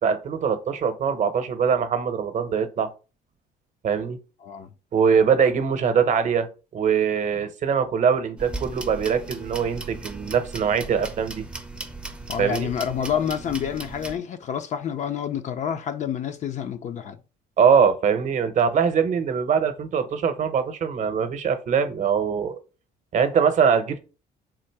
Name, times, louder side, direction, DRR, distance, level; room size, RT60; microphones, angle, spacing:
voice 1, 0.0-2.9 3.8-4.2 4.9-6.5 6.7-11.4 12.4-12.7 17.6-22.6 23.1-24.0, right 6 dB, 45° right, 0.7 m, -22 dB
sound 1, 8.4-14.2, right 2 dB, 5° right, 0.5 m, -37 dB
voice 2, 12.3-17.2, left 8 dB, 45° left, 0.4 m, -28 dB
3.7 x 2.5 x 4.5 m
cardioid pair, 110°, 17 cm